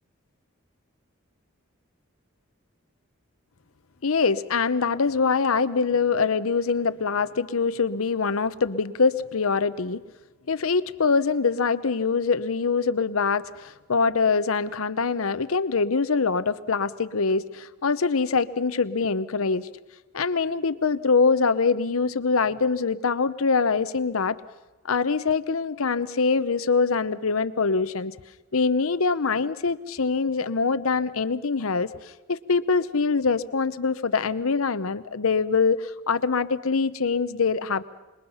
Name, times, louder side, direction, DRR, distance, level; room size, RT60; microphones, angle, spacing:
voice 1, 4.0-10.0 10.5-19.7 20.1-24.4 24.8-28.1 28.5-37.8, left 4 dB, 85° left, 14 dB, 0.8 m, -24 dB
26.0 x 21.5 x 5.6 m, 1.1 s
head